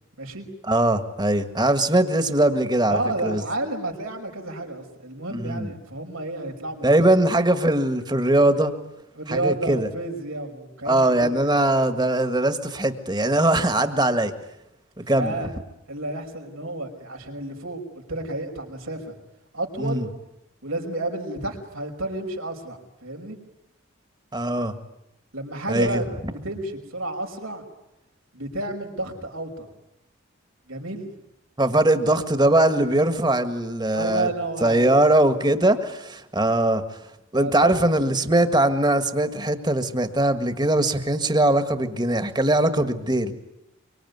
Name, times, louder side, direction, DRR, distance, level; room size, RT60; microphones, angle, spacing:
voice 1, 0.7-3.4 5.3-5.7 6.8-8.7 9.3-9.9 10.9-14.3 15.0-15.4 19.8-20.1 24.3-24.7 25.7-26.0 31.6-34.3 34.6-36.8 37.3-43.3, right 1 dB, 20° right, 9 dB, 1.7 m, -21 dB
voice 2, 2.9-7.1 9.1-11.5 15.1-15.5 15.9-17.8 18.1-19.1 19.5-20.1 20.6-23.4 25.3-27.6 28.3-29.7 30.7-31.1 33.9-35.4 37.4-37.8, right 2 dB, 85° right, 3 dB, 5.5 m, -31 dB
24.5 x 24.5 x 9.5 m, 0.85 s
head